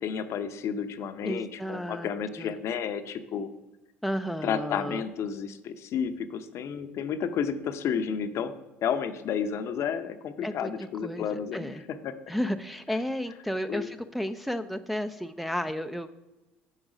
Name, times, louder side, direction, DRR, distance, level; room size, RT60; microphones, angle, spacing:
voice 1, 0.0-3.5 4.4-8.5 8.8-12.1 13.7-13.9, left 7 dB, 55° left, 9 dB, 0.7 m, -31 dB
voice 2, 1.2-2.1 2.4-2.5 4.0-5.0 10.4-10.7 11.0-11.8 12.3-16.1, equal, ahead, 7 dB, 0.4 m, -32 dB
9.7 x 4.0 x 4.9 m, 1.0 s
hypercardioid pair, 65°, 6 cm